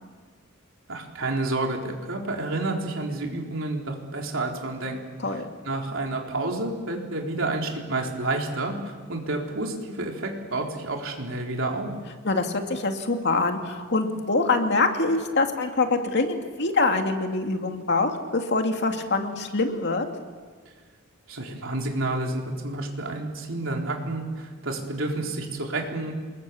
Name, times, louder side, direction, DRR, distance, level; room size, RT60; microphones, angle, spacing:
voice 1, 0.9-5.0 5.3-11.9 21.3-26.1, right 2 dB, 65° right, 1 dB, 4.0 m, -30 dB
voice 2, 12.2-20.1, left 3 dB, 55° left, 4 dB, 2.3 m, -24 dB
28.0 x 21.5 x 7.1 m, 1.5 s
head